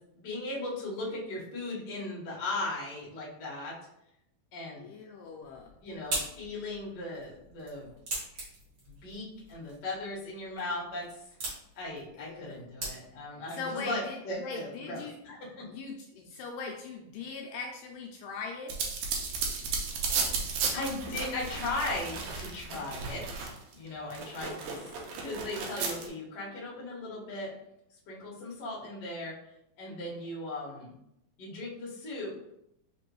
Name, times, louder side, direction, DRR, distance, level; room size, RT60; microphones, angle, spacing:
voice 1, 0.1-3.7 4.5-4.9 5.8-7.9 8.9-11.2 11.7-15.6 20.3-24.9 25.2-27.5 28.1-29.3 29.8-31.0 31.4-32.3, left 2 dB, 55° left, -5 dB, 1.1 m, -37 dB
voice 2, 4.8-5.8 12.1-12.6 13.5-15.2 15.7-18.8, left 4 dB, 80° left, 2 dB, 2.0 m, -40 dB
sound 1, 5.4-13.4, right 2 dB, 50° right, 1.3 m, -41 dB
sound 2, 18.7-23.7 24.1-26.1, right 4 dB, 75° right, 1.7 m, -34 dB
5.2 x 3.0 x 3.0 m, 0.78 s
omnidirectional pair, 4.1 m